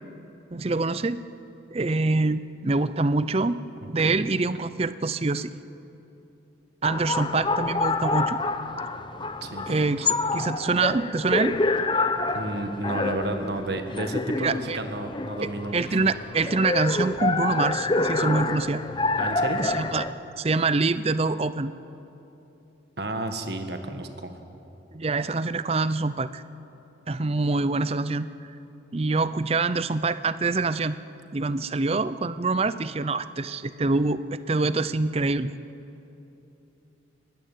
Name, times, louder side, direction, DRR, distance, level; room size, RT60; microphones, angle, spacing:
voice 1, 0.5-1.2 1.7-3.6 3.9-5.5 6.8-8.4 9.7-11.6 14.4-14.8 15.7-18.8 19.6-20.0 20.4-21.7 24.9-26.4 27.1-28.3 28.9-31.0 31.3-35.5, right 3 dB, 30° right, 14 dB, 0.5 m, -25 dB
sound 1, 6.8-20.1, left 3 dB, 25° left, 0.8 m, -27 dB
voice 2, 9.4-9.7 12.3-16.0 19.2-19.6 23.0-24.3, right 1 dB, 60° right, 7 dB, 1.6 m, -31 dB
22.5 x 18.0 x 9.2 m, 2.9 s
head